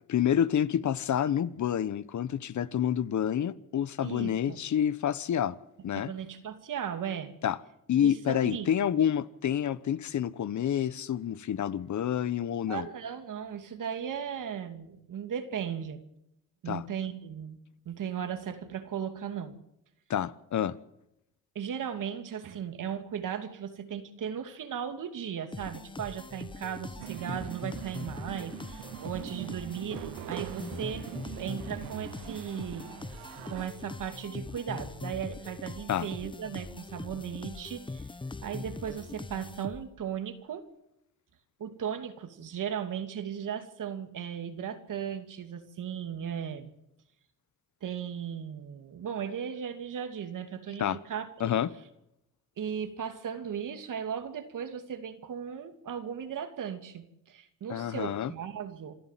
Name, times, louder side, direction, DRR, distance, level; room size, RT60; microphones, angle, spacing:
voice 1, 0.1-5.6 5.8-6.1 7.4-7.6 7.9-12.9 16.7-16.8 20.1-20.8 35.9-36.1 50.8-51.0 51.4-51.7 57.7-58.3, left 9 dB, 55° left, 1.1 m, -28 dB
voice 2, 4.0-4.6 5.9-7.3 8.0-8.7 12.7-16.0 16.6-17.6 17.9-19.6 21.5-31.1 31.4-32.9 33.4-38.1 38.4-40.6 41.6-46.7 47.8-51.6 52.6-58.9, right 8 dB, 65° right, 2.6 m, -37 dB
sound 1, 25.5-40.1, left 3 dB, 15° left, 0.8 m, -42 dB
sound 2, 27.0-33.7, right 17 dB, 85° right, 0.7 m, -42 dB
27.5 x 12.5 x 7.6 m
supercardioid pair, 70°, 35 cm